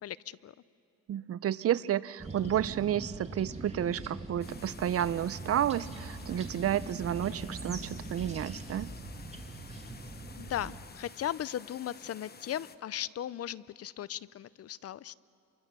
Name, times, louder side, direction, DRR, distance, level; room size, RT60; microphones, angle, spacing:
voice 1, 0.0-0.5 2.4-2.6 10.3-15.2, left 11 dB, 55° left, 19 dB, 0.6 m, -37 dB
voice 2, 1.1-8.9, right 10 dB, 50° right, 17 dB, 0.6 m, -31 dB
sound 1, 2.2-10.8, right 2 dB, 20° right, 2.6 m, -42 dB
sound 2, 4.4-12.8, left 5 dB, 30° left, 1.0 m, -52 dB
28.0 x 24.0 x 6.8 m, 2.6 s
cardioid pair, 90°, 30 cm